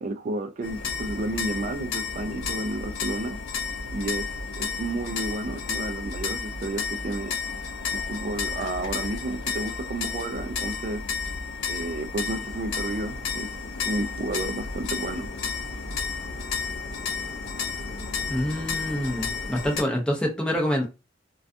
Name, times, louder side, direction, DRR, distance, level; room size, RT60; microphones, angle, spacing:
voice 1, 0.0-3.4 3.9-4.3 4.6-7.3 7.9-11.0 11.7-13.5 13.8-15.3, right 2 dB, 40° right, 0.3 m, -31 dB
sound 1, 0.6-19.8, left 5 dB, 80° left, 0.5 m, -32 dB
sound 2, 12.1-19.8, left 1 dB, 40° left, 1.0 m, -44 dB
voice 2, 18.3-20.9, equal, 5° left, 0.6 m, -26 dB
2.3 x 2.3 x 2.5 m
head